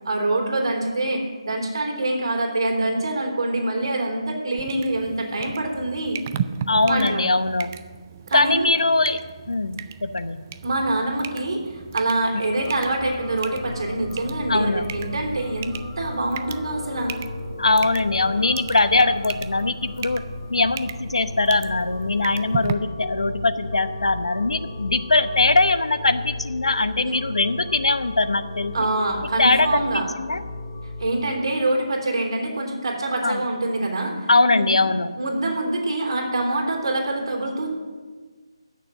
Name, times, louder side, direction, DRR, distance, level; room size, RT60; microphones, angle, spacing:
voice 1, 0.1-6.2 6.9-7.3 8.3-8.7 10.6-17.1 27.0-27.1 28.7-30.0 31.0-34.2 34.5-34.8 35.2-37.8, right 2 dB, 55° right, 1 dB, 3.6 m, -25 dB
sound 1, 4.6-22.7, right 9 dB, 25° right, 0.4 m, -37 dB
voice 2, 6.7-7.7 8.3-9.2 9.5-10.4 14.5-14.8 17.6-20.2 20.5-28.7 29.4-30.4 33.2-33.5 34.3-35.1, left 3 dB, 85° left, 11 dB, 0.9 m, -21 dB
sound 2, 12.6-31.3, left 2 dB, 15° left, 2.0 m, -36 dB
15.5 x 6.8 x 7.4 m, 1.4 s
figure-of-eight pair, 165°, 3 cm